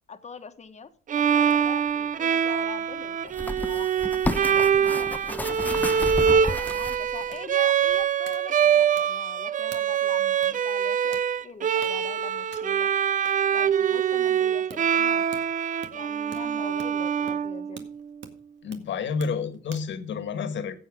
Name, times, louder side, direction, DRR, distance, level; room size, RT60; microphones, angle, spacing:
voice 1, 0.1-3.9 4.6-12.9 13.5-15.3 15.9-17.8, left 5 dB, 35° left, 9 dB, 1.4 m, -43 dB
Bowed string instrument, 1.1-18.0, right 8 dB, 40° right, 0.5 m, -24 dB
sound 1, 1.5-1.6 3.3-7.3 7.9-8.0, left 1 dB, 10° left, 0.8 m, -32 dB
sound 2, 5.3-20.0, right 6 dB, 70° right, 1.9 m, -49 dB
voice 2, 18.6-20.8, left 5 dB, 65° left, 10 dB, 1.7 m, -30 dB
15.5 x 7.7 x 3.7 m, 0.42 s
cardioid pair, 90°, 20 cm